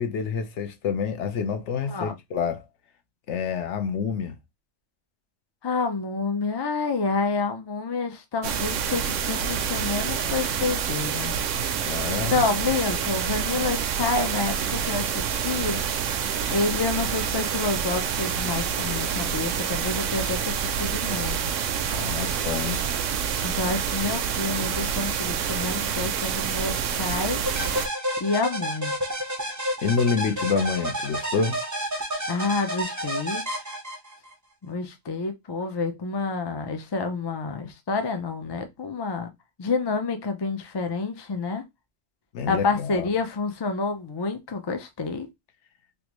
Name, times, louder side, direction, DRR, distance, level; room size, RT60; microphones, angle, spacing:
voice 1, 0.0-2.6 3.3-4.4 11.8-12.4 21.9-22.8 29.8-31.6 42.3-43.1, left 6 dB, 65° left, 1.0 m, -27 dB
voice 2, 5.6-11.3 12.2-15.8 16.5-21.5 23.4-27.4 28.2-28.9 32.3-33.4 34.6-39.3 39.6-41.6 42.5-45.3, left 4 dB, 40° left, 0.3 m, -28 dB
sound 1, 8.4-27.9, right 7 dB, 75° right, 0.9 m, -27 dB
sound 2, 27.5-34.3, equal, 20° right, 0.5 m, -30 dB
3.4 x 2.5 x 3.0 m
omnidirectional pair, 1.3 m